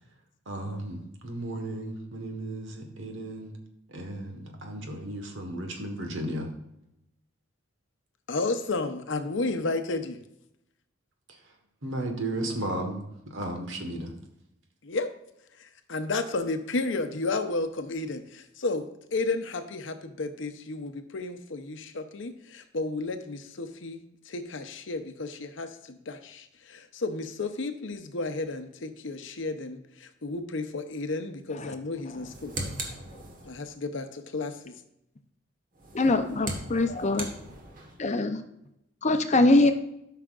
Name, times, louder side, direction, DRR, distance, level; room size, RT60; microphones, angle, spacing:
voice 1, 0.5-3.6 3.9-6.5 11.8-14.1, right 1 dB, 75° right, 3 dB, 1.4 m, -34 dB
voice 2, 8.3-10.2 14.8-15.1 15.6-32.5 33.4-34.7, left 3 dB, 70° left, 8 dB, 0.7 m, -32 dB
sound 1, 32.1-33.7 35.7-38.0, right 2 dB, 45° right, 1.4 m, -39 dB
voice 3, 35.9-37.3 38.0-38.4 39.0-39.7, left 2 dB, 35° left, 7 dB, 0.6 m, -22 dB
12.5 x 5.7 x 2.5 m, 0.82 s
head